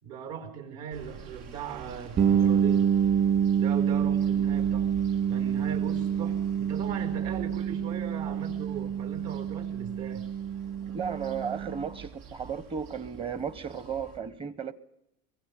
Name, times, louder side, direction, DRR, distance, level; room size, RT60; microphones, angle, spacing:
voice 1, 0.0-2.9 3.6-4.9 5.3-10.3, right 7 dB, 65° right, 5.3 m, -39 dB
sound 1, 0.9-14.2, right 8 dB, 80° right, 5.6 m, -48 dB
sound 2, 2.2-11.9, right 8 dB, 35° right, 2.5 m, -27 dB
voice 2, 10.9-14.7, right 6 dB, 20° right, 1.1 m, -34 dB
23.5 x 22.0 x 7.2 m
cardioid pair, 155°, 31 cm